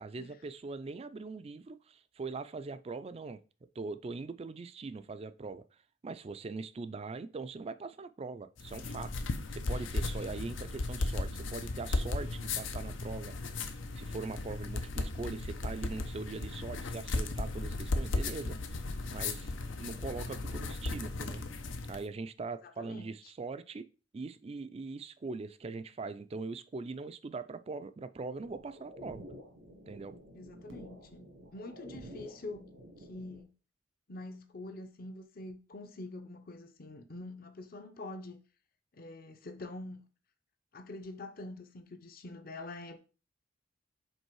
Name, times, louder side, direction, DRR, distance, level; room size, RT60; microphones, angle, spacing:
voice 1, 0.0-3.4 3.8-5.6 6.0-9.1 9.5-13.3 13.9-18.8 19.1-19.5 19.8-21.4 21.9-23.9 24.1-29.2 29.9-30.1, right 4 dB, 30° right, 0.4 m, -41 dB
sound 1, 8.6-22.0, left 2 dB, 80° left, 0.7 m, -36 dB
voice 2, 22.6-23.1 30.3-32.7 33.0-33.5 34.1-38.4 38.9-40.0 40.7-43.0, left 2 dB, 50° left, 0.7 m, -45 dB
sound 2, 28.4-33.4, equal, 85° right, 1.6 m, -50 dB
5.4 x 3.8 x 4.6 m
head